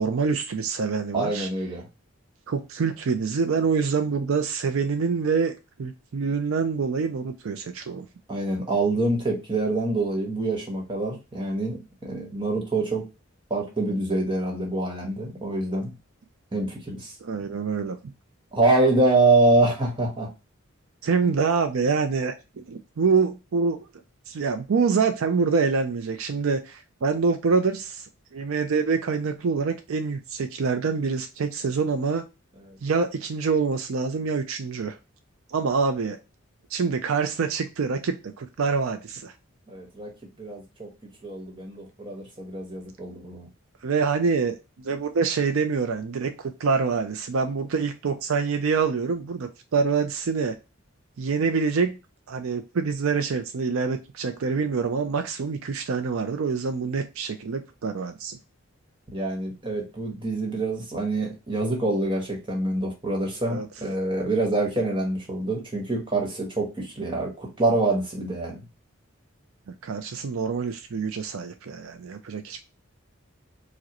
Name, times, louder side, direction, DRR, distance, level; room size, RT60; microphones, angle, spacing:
voice 1, 0.0-1.5 2.5-5.5 5.8-8.1 17.2-18.0 21.0-23.9 24.3-32.2 32.8-35.0 35.5-36.2 36.7-39.3 43.8-50.6 51.2-52.0 52.3-58.4 63.5-63.7 69.8-72.6, right 5 dB, 70° right, 7 dB, 0.4 m, -26 dB
voice 2, 1.1-1.8 8.3-13.0 13.5-15.9 16.5-17.1 18.5-20.3 21.2-21.3 32.7-32.8 39.7-40.1 40.4-40.9 41.2-43.5 59.1-68.6, right 2 dB, 20° right, 1 dB, 1.1 m, -25 dB
4.7 x 2.1 x 2.9 m, 0.28 s
head